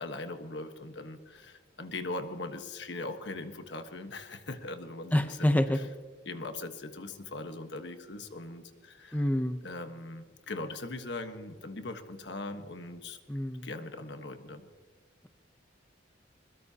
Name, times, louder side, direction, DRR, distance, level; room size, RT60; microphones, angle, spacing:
voice 1, 0.0-5.5 6.3-9.2 9.6-13.2 13.6-14.7, left 2 dB, 60° left, 7 dB, 1.3 m, -40 dB
voice 2, 5.1-5.9 9.1-9.6 13.3-13.7, left 1 dB, 10° left, 8 dB, 0.6 m, -27 dB
21.5 x 21.5 x 2.9 m, 1.5 s
head